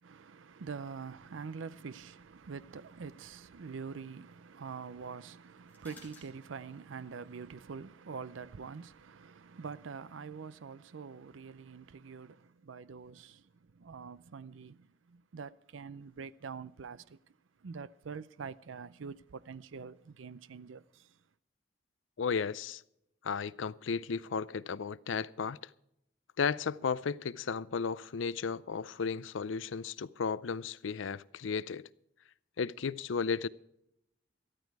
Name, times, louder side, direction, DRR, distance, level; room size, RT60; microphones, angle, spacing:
voice 1, 0.0-21.2, right 5 dB, 85° right, 0.5 m, -45 dB
sound 1, 2.6-10.3, left 3 dB, 10° left, 3.5 m, -65 dB
voice 2, 22.2-22.8 23.2-25.7 26.4-31.9 32.6-33.5, left 5 dB, 85° left, 0.5 m, -34 dB
13.5 x 13.5 x 4.7 m
head